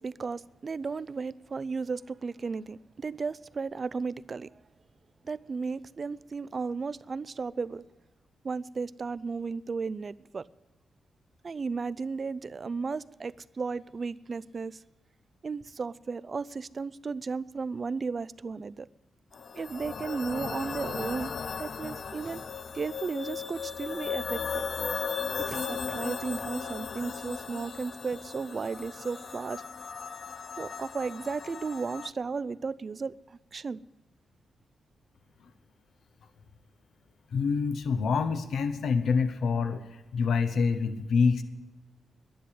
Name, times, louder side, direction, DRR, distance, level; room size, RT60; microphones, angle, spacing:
voice 1, 0.0-4.6 5.2-7.9 8.4-10.5 11.4-14.8 15.4-18.9 19.5-21.3 21.6-22.4 22.7-24.7 25.5-29.6 30.6-33.8, right 4 dB, 40° right, 0.4 m, -34 dB
sound 1, 19.3-32.1, left 6 dB, 50° left, 0.5 m, -36 dB
sound 2, 22.2-29.4, left 3 dB, 90° left, 5.5 m, -56 dB
voice 2, 37.3-41.4, left 5 dB, 75° left, 0.9 m, -26 dB
11.5 x 10.0 x 10.0 m
wide cardioid pair, 120°, 0 cm